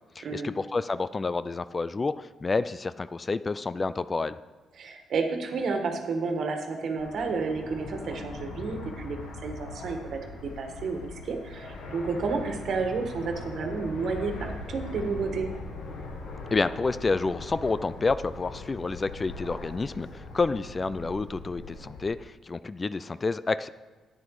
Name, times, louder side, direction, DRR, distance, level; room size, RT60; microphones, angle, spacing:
voice 1, 0.2-4.4 16.5-23.7, left 3 dB, 30° left, 15 dB, 0.3 m, -29 dB
voice 2, 4.8-15.5, right 4 dB, 60° right, 4 dB, 1.6 m, -31 dB
Fixed-wing aircraft airplane, 7.0-22.1, left 2 dB, 80° left, 1.7 m, -41 dB
10.5 x 9.0 x 4.8 m, 1.3 s
cardioid pair, 90°, 0 cm